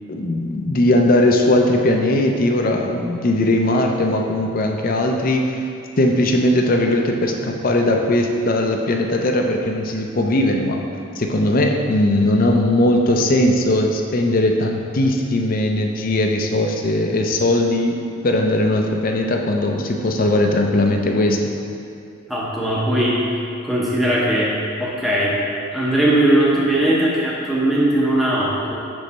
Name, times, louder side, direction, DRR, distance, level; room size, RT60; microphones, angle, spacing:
voice 1, 0.1-5.6 6.0-10.8 11.2-18.0 18.2-21.4, left 1 dB, 40° left, 2 dB, 0.5 m, -19 dB
voice 2, 22.3-23.3 23.6-24.5 24.8-25.4 25.7-28.7, right 1 dB, ahead, -6 dB, 0.7 m, -19 dB
6.8 x 3.2 x 5.2 m, 2.6 s
head